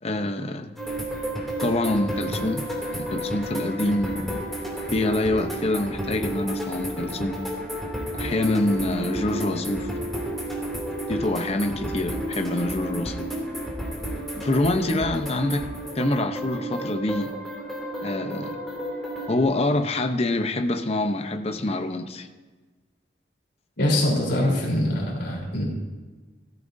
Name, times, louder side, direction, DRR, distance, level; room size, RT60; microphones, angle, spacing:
voice 1, 0.0-0.7 1.6-4.4 4.9-7.4 8.1-9.9 11.1-13.3 14.3-15.6 15.9-17.3 18.0-18.6 19.3-22.3, left 2 dB, 35° left, 7 dB, 0.7 m, -26 dB
sound 1, 0.8-19.4, right 1 dB, ahead, 2.6 m, -32 dB
voice 2, 23.8-25.6, left 1 dB, 65° left, -3 dB, 3.6 m, -23 dB
17.0 x 14.5 x 2.6 m, 1.3 s
head